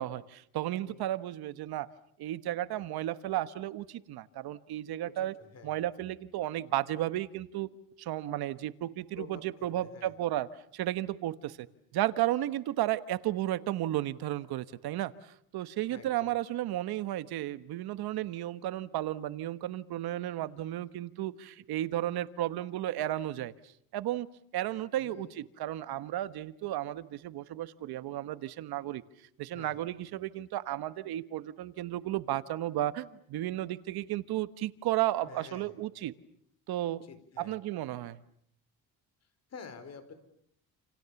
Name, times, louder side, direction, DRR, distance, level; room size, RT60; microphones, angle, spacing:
voice 1, 0.0-1.9 2.2-5.3 5.6-7.7 8.0-11.7 11.9-23.5 23.9-24.3 24.5-29.0 29.4-36.1 36.7-37.0 37.4-38.2, right 14 dB, 75° right, 13 dB, 1.3 m, -33 dB
voice 2, 5.0-5.7 9.1-10.1 15.9-16.3 25.0-25.3 29.5-29.8 35.3-35.7 36.8-37.6 39.5-40.1, left 5 dB, 40° left, 11 dB, 4.8 m, -49 dB
29.0 x 29.0 x 7.1 m, 0.68 s
cardioid pair, 140°, 38 cm